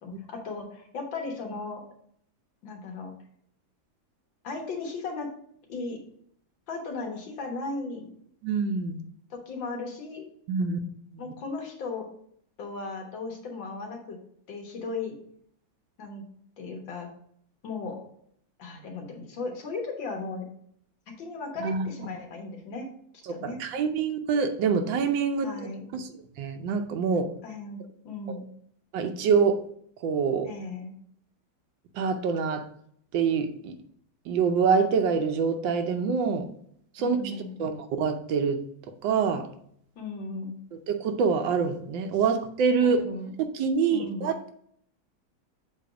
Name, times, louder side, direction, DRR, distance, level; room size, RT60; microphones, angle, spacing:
voice 1, 0.0-1.8 2.6-3.1 4.4-5.3 5.7-6.0 6.7-8.1 9.3-10.3 11.2-12.1 12.6-14.2 14.5-15.2 16.0-16.2 16.6-17.1 17.6-18.0 18.6-20.5 21.2-22.9 23.3-23.6 25.4-25.9 27.4-28.5 30.4-30.9 37.0-37.6 40.0-40.6 42.8-43.3 43.9-44.3, left 3 dB, 75° left, 2 dB, 2.0 m, -36 dB
voice 2, 8.4-9.0 10.5-10.8 11.1-11.2 21.6-21.9 23.3-25.7 25.9-26.1 26.4-27.3 28.3-28.4 28.9-29.6 30.0-30.5 31.9-32.7 33.1-33.7 34.3-36.5 36.9-38.6 39.0-39.5 40.9-43.0 43.5-44.5, right 5 dB, 75° right, 7 dB, 1.4 m, -26 dB
7.6 x 3.1 x 4.9 m, 0.66 s
omnidirectional pair, 2.1 m